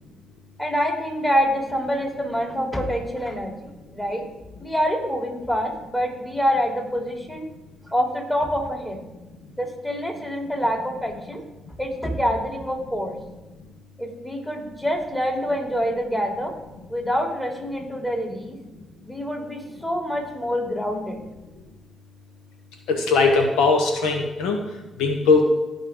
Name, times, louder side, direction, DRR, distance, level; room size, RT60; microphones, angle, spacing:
voice 1, 0.6-4.2 4.6-7.5 7.9-9.0 9.6-11.4 11.8-13.2 14.0-16.5 16.9-18.6 19.0-21.2, equal, 15° left, 0 dB, 3.4 m, -26 dB
voice 2, 22.9-24.6 25.0-25.5, left 4 dB, 85° left, 4 dB, 1.0 m, -19 dB
16.0 x 5.5 x 3.8 m, 1.0 s
supercardioid pair, 50°, 0 cm